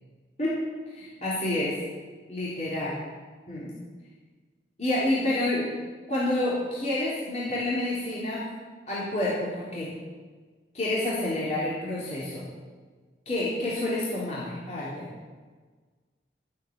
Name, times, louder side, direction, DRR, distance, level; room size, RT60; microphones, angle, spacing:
voice 1, 0.9-1.8 2.3-3.0 3.5-3.7 4.8-5.7 6.1-8.5 8.9-9.9 10.7-12.4 13.3-15.1, left 1 dB, 35° left, -7 dB, 3.7 m, -28 dB
14.5 x 7.6 x 9.0 m, 1.4 s
head